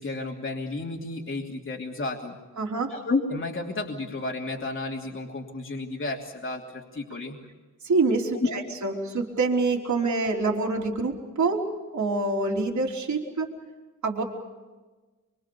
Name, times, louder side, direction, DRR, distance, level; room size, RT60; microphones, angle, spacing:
voice 1, 0.0-2.4 2.9-7.4 8.4-8.6 9.9-10.1, left 3 dB, 40° left, 0 dB, 2.9 m, -32 dB
voice 2, 2.6-2.9 7.8-11.6 11.9-13.5 14.0-14.2, right 3 dB, 65° right, -1 dB, 3.6 m, -26 dB
25.5 x 24.0 x 7.0 m, 1.3 s
cardioid pair, 80°, 31 cm